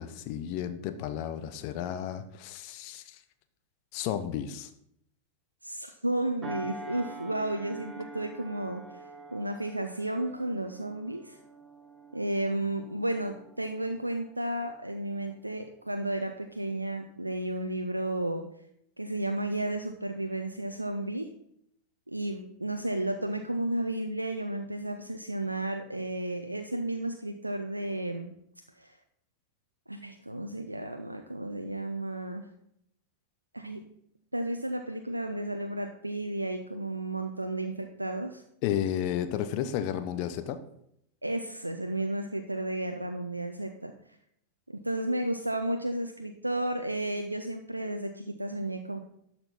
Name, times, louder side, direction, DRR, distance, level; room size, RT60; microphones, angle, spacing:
voice 1, 0.0-3.2 3.9-4.7 38.6-40.6, left 10 dB, 45° left, 10 dB, 0.7 m, -32 dB
voice 2, 5.6-9.0 9.3-11.4 12.1-18.4 19.0-21.3 22.1-28.3 28.8-29.0 29.9-32.5 33.5-33.8 34.3-38.4 41.2-43.9 44.7-49.0, right 1 dB, 85° right, 6 dB, 0.5 m, -33 dB
sound 1, 6.4-15.3 15.7-16.0, right 3 dB, 15° right, 1.8 m, -47 dB
12.0 x 4.4 x 5.7 m, 0.74 s
figure-of-eight pair, 90°, 0 cm